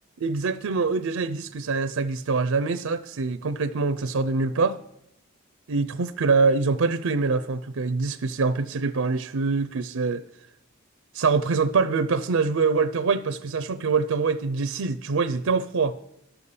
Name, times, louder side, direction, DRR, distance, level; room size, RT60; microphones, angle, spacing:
voice 1, 0.2-4.8 5.7-10.2 11.1-16.0, right 4 dB, 90° right, 0.5 m, -24 dB
11.5 x 7.1 x 6.8 m
head